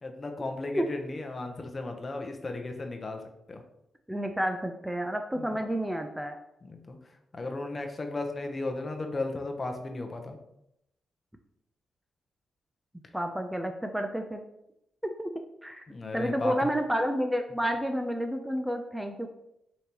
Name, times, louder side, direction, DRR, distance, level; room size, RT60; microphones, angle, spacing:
voice 1, 0.0-3.2 3.5-3.6 5.4-5.5 6.6-7.0 7.3-10.4 15.9-16.5, left 2 dB, 35° left, 4 dB, 0.7 m, -35 dB
voice 2, 4.1-6.4 13.1-14.4 15.0-15.3 15.6-15.8 16.1-19.3, equal, 5° right, 5 dB, 0.4 m, -30 dB
5.2 x 2.9 x 2.9 m, 0.81 s
cardioid pair, 65°, 0 cm